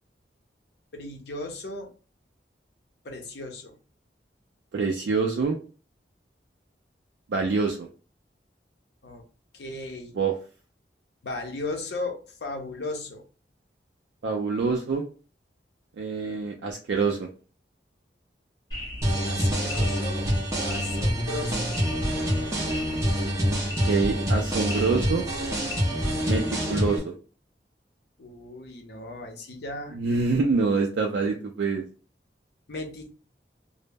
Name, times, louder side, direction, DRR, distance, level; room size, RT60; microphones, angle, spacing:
voice 1, 0.9-1.9 3.0-3.8 9.0-9.2 9.5-10.2 11.2-13.2 19.2-20.3 20.6-21.7 28.2-30.0 32.7-33.1, left 2 dB, 70° left, 4 dB, 0.6 m, -36 dB
voice 2, 4.7-5.6 7.3-7.9 10.2-10.3 14.2-15.0 16.0-17.3 23.9-25.3 26.2-26.4 26.7-27.1 29.9-31.9, right 4 dB, 80° right, 1 dB, 0.4 m, -25 dB
sound 1, 18.7-25.8, left 1 dB, 25° left, 0.6 m, -39 dB
sound 2, 19.0-27.0, equal, 15° right, 0.6 m, -26 dB
2.0 x 2.0 x 3.3 m, 0.37 s
head